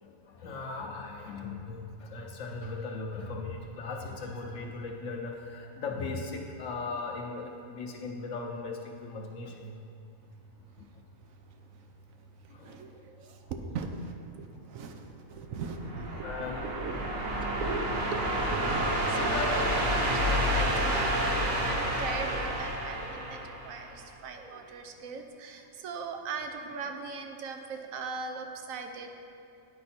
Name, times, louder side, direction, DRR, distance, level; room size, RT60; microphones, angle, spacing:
voice 1, 0.0-9.8 12.5-12.8 16.2-16.7 19.3-19.6 20.2-20.5 21.1-21.2 23.9-24.0 25.1-25.2, left 3 dB, 70° left, 1 dB, 1.0 m, -38 dB
voice 2, 11.3-11.9 12.2-29.1, right 5 dB, 90° right, 5 dB, 1.1 m, -40 dB
sound 1, 15.6-24.1, equal, 55° right, 1.0 m, -29 dB
9.5 x 4.7 x 4.2 m, 2.5 s
omnidirectional pair, 1.4 m